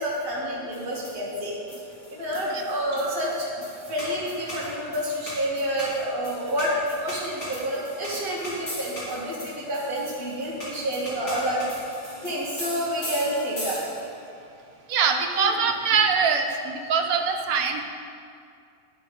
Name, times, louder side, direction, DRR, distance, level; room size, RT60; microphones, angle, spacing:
voice 1, 0.0-1.5 2.1-11.6 12.2-13.8 15.4-15.5, equal, 45° right, -8 dB, 1.5 m, -29 dB
sound 1, 0.7-14.2, equal, 80° left, 3.2 m, -39 dB
voice 2, 14.9-17.8, right 5 dB, 85° right, 5 dB, 1.2 m, -23 dB
12.0 x 4.6 x 5.2 m, 2.4 s
omnidirectional pair, 1.5 m